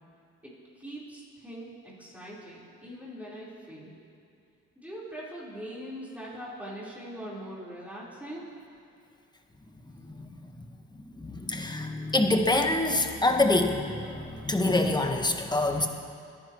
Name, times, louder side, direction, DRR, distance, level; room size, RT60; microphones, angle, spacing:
voice 1, 0.4-4.0 4.8-8.5, equal, 5° right, -8 dB, 4.1 m, -42 dB
voice 2, 10.0-10.5 11.1-15.9, left 2 dB, 15° left, 4 dB, 1.3 m, -26 dB
26.0 x 10.0 x 3.1 m, 2.5 s
cardioid pair, 90°, 30 cm